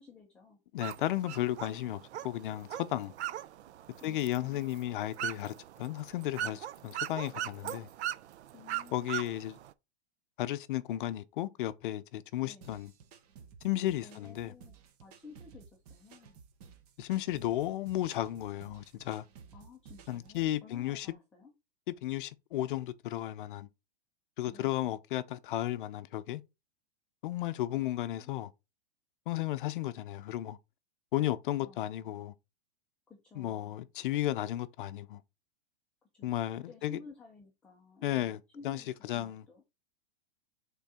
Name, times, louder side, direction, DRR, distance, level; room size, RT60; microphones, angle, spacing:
voice 1, 0.0-0.6 8.5-9.2 12.4-12.8 14.0-16.4 19.5-21.5 24.5-24.9 27.7-28.5 31.6-32.2 33.1-33.7 36.0-36.3 36.7-39.6, left 4 dB, 5° left, 0.5 m, -54 dB
voice 2, 0.7-3.1 4.0-7.9 8.9-9.6 10.4-12.9 13.6-14.5 17.0-19.3 20.1-21.1 22.0-23.7 24.4-26.4 27.2-28.5 29.3-30.6 31.1-32.3 33.4-35.2 36.2-37.0 38.0-38.4 38.6-38.8 39.1-39.4, left 14 dB, 50° left, 0.6 m, -34 dB
sound 1, 0.8-9.7, right 12 dB, 80° right, 0.6 m, -40 dB
sound 2, 12.6-20.6, right 6 dB, 35° right, 0.8 m, -55 dB
5.9 x 3.8 x 4.2 m
supercardioid pair, 165°, 33 cm